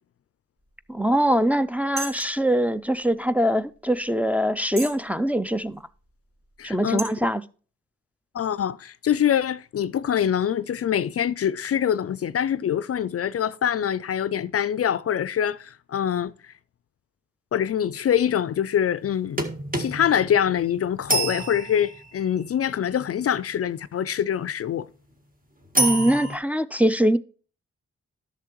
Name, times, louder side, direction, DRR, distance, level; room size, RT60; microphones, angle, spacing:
voice 1, 0.9-5.8 6.6-7.4 25.8-27.2, equal, 5° right, 0.5 m, -23 dB
sound 1, 1.1-1.3 2.0-2.4 3.1-3.2 3.8-3.9 4.7-5.0 5.6-5.7 6.4-6.6 7.0-7.1, right 2 dB, 45° right, 4.2 m, -33 dB
voice 2, 6.6-7.0 8.3-16.5 17.5-19.4 19.8-24.9, left 9 dB, 50° left, 0.4 m, -24 dB
sound 2, 19.4-22.3 25.7-26.4, right 2 dB, 30° right, 1.7 m, -27 dB
11.0 x 6.8 x 3.0 m
supercardioid pair, 40°, 31 cm